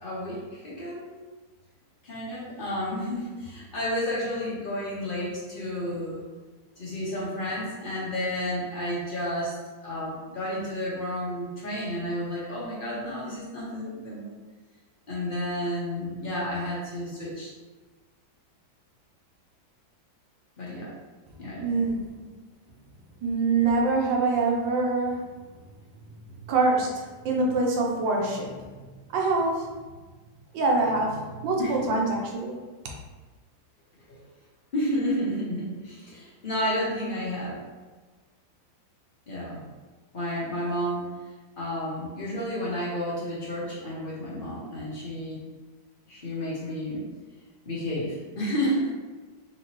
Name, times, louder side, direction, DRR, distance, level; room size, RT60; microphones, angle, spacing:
voice 1, 0.0-1.1 2.0-6.2 6.8-9.5 9.8-14.4 15.1-17.5 20.6-20.9 21.4-21.7 31.6-31.9 34.1-34.2 34.7-37.6 39.3-39.6 40.1-41.1 41.6-45.4 46.1-47.0 47.6-48.9, equal, 45° left, -6 dB, 0.7 m, -31 dB
voice 2, 21.6-22.2 23.2-25.4 26.5-28.5 29.1-29.7 30.5-32.6, right 3 dB, 80° right, -1 dB, 1.4 m, -25 dB
3.8 x 2.9 x 2.9 m, 1.3 s
omnidirectional pair, 2.0 m